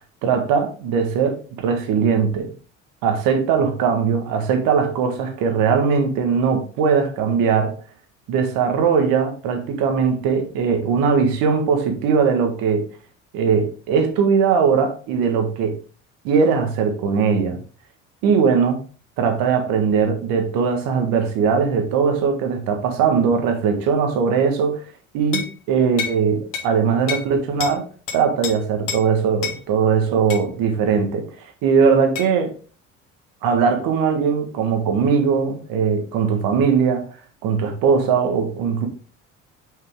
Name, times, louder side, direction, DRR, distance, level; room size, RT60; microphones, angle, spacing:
voice 1, 0.2-2.5 3.0-7.7 8.3-12.8 13.3-15.7 16.2-17.6 18.2-18.8 19.2-24.8 25.1-27.8 28.1-31.3 31.6-32.5 33.4-37.0 37.4-38.9, right 6 dB, 70° right, 1.7 m, -20 dB
sound 1, 25.3-25.5 26.0-26.2 26.5-26.7 27.1-27.3 27.6-27.8 28.1-28.5 28.9-29.0 29.4-29.6 30.3-30.5 32.2-32.3, left 7 dB, 60° left, 2.0 m, -28 dB
5.8 x 5.8 x 3.7 m
hypercardioid pair, 60°, 36 cm